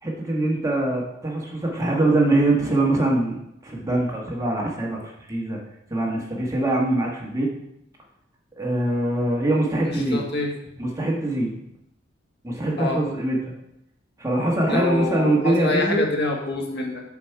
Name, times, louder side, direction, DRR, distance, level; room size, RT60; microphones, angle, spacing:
voice 1, 0.0-3.3 3.6-5.6 5.9-7.5 8.6-10.2 10.8-11.5 12.4-13.5 14.2-16.0, right 1 dB, 15° right, -2 dB, 1.5 m, -23 dB
voice 2, 9.8-10.5 12.8-13.0 14.7-17.0, left 2 dB, 60° left, 1 dB, 1.5 m, -26 dB
7.1 x 6.0 x 4.7 m, 0.81 s
head